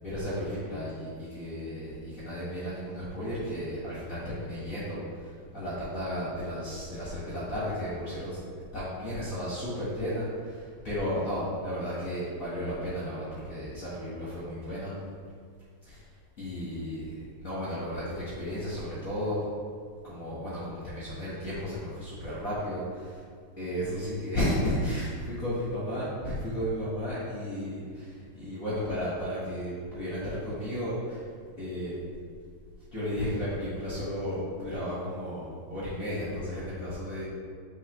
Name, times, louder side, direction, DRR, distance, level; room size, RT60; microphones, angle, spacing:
voice 1, 0.0-8.4 8.7-14.9 15.8-16.0 16.4-17.1 17.4-19.4 20.0-23.2 23.6-31.3 31.6-32.0 32.9-37.3, equal, 35° left, -9 dB, 1.3 m, -33 dB
9.0 x 4.6 x 3.3 m, 2.1 s
omnidirectional pair, 3.9 m